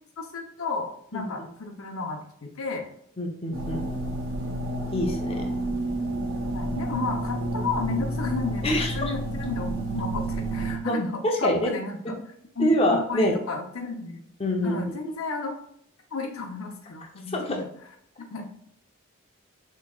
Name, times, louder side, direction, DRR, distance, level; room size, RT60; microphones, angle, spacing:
voice 1, 0.2-2.9 6.4-12.2 12.6-14.2 14.6-15.5 16.1-17.7 18.3-18.6, left 3 dB, 85° left, 2 dB, 0.8 m, -33 dB
voice 2, 1.1-1.5 3.2-3.8 4.9-5.5 8.6-9.0 10.8-11.0 11.4-11.7 12.6-13.3 14.4-14.9 17.3-17.6, equal, 25° left, 1 dB, 0.7 m, -25 dB
sound 1, 3.5-10.8, right 1 dB, 75° right, 1.2 m, -30 dB
6.0 x 3.2 x 2.4 m, 0.69 s
head